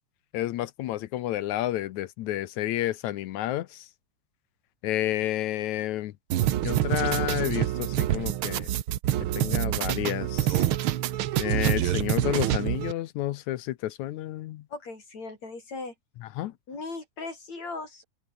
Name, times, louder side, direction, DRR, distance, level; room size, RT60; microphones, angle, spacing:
voice 1, 0.3-3.9 4.8-6.1 6.6-8.7 9.3-10.6 11.4-14.6 16.4-16.5, left 14 dB, 75° left, 2.1 m, -30 dB
sound 1, 6.3-12.9, right 12 dB, 70° right, 1.2 m, -26 dB
voice 2, 14.7-15.9 16.7-18.0, left 3 dB, 60° left, 8.1 m, -38 dB
omnidirectional pair, 3.5 m